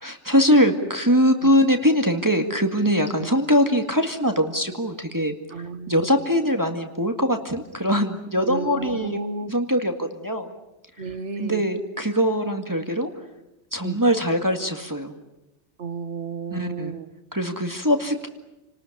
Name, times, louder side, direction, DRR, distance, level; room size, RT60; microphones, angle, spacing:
voice 1, 0.0-5.3 5.9-9.2 9.5-10.5 11.4-13.1 13.7-15.1 16.5-17.0 17.3-18.3, equal, 15° right, 4 dB, 2.1 m, -22 dB
voice 2, 5.5-5.9 8.4-9.5 11.0-11.6 13.8-14.0 15.8-17.1, right 4 dB, 80° right, 11 dB, 1.8 m, -32 dB
29.5 x 19.5 x 10.0 m, 0.93 s
omnidirectional pair, 1.2 m